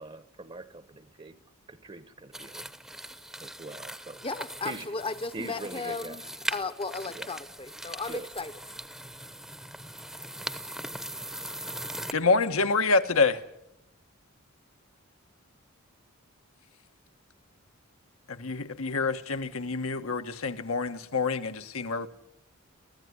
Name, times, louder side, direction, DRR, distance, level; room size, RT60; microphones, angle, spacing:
voice 1, 0.0-1.4 1.7-2.7 3.4-4.2 4.6-4.9 5.3-6.2 7.1-7.3 8.1-8.3, right 3 dB, 25° right, 1.0 m, -42 dB
sound 1, 2.3-12.1, right 1 dB, ahead, 0.9 m, -40 dB
voice 2, 4.2-8.5, left 3 dB, 25° left, 0.9 m, -35 dB
voice 3, 12.1-13.4 18.3-22.1, left 4 dB, 80° left, 1.4 m, -27 dB
23.5 x 15.5 x 9.7 m
head